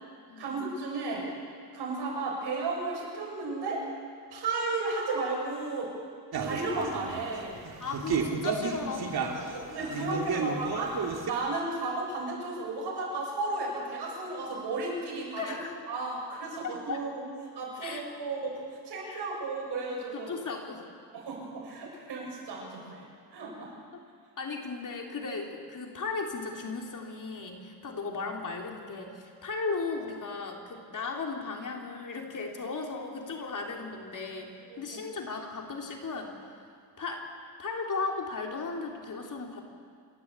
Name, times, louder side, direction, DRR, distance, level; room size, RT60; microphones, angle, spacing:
voice 1, 0.4-1.3 1.7-3.8 4.3-5.9 6.4-7.5 9.5-10.9 11.2-15.6 15.9-17.2 17.5-18.5 18.8-20.3 21.1-23.7 34.7-35.0, right 3 dB, 80° right, -3 dB, 7.5 m, -34 dB
sound 1, 6.3-11.3, right 5 dB, 65° right, 2.5 m, -33 dB
voice 2, 7.8-10.8 15.4-15.8 16.9-17.0 17.8-18.0 19.0-19.2 20.1-20.8 23.9-24.0 24.4-36.5 37.0-37.3 37.6-39.6, left 4 dB, 50° left, 1 dB, 3.3 m, -36 dB
27.5 x 12.5 x 8.3 m, 2.2 s
cardioid pair, 110°, 40 cm